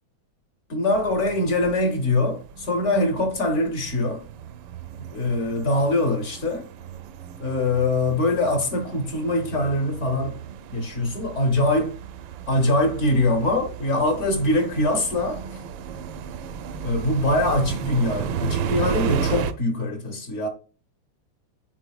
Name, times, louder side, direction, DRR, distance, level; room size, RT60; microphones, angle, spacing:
voice 1, 0.7-4.2 5.0-6.6 7.4-10.4 10.7-12.0 12.5-15.4 16.8-20.5, left 2 dB, 55° left, 0.8 m, -23 dB
sound 1, 0.9-19.5, right 7 dB, 75° right, 1.3 m, -34 dB
10.0 x 4.1 x 2.3 m
omnidirectional pair, 2.3 m